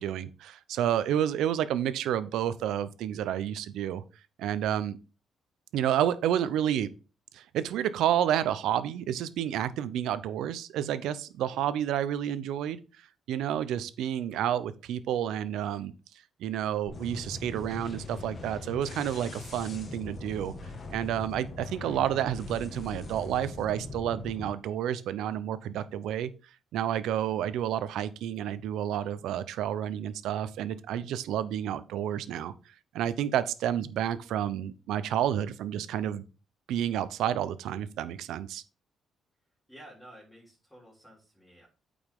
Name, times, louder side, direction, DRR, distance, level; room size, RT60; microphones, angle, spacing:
voice 1, 0.0-4.0 4.4-5.0 5.7-6.9 7.3-12.8 13.3-15.9 16.4-20.5 20.9-26.3 26.7-32.5 32.9-36.2 36.7-38.6, right 10 dB, 85° right, 15 dB, 0.6 m, -30 dB
sound 1, 16.9-24.5, left 3 dB, 45° left, 1.6 m, -41 dB
voice 2, 39.7-41.7, right 1 dB, 10° left, -5 dB, 3.4 m, -52 dB
8.8 x 5.1 x 3.6 m, 0.33 s
cardioid pair, 90°, 0 cm